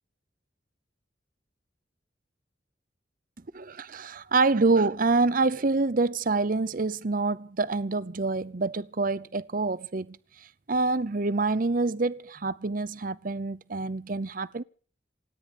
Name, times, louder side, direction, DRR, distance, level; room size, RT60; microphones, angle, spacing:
voice 1, 3.5-10.2 10.7-14.6, right 3 dB, 45° right, 0.7 m, -26 dB
27.5 x 9.7 x 5.2 m
head